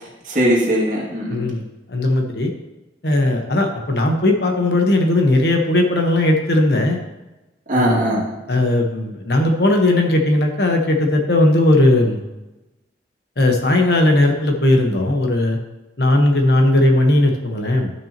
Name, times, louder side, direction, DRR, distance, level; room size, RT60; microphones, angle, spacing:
voice 1, 0.0-1.5 7.7-8.4, equal, 45° right, -4 dB, 2.2 m, -20 dB
voice 2, 1.3-1.6 1.9-2.5 3.0-7.0 7.7-8.2 8.5-12.2 13.4-15.6 16.0-17.9, left 1 dB, 65° left, 2 dB, 1.2 m, -17 dB
12.5 x 5.9 x 3.0 m, 1.0 s
head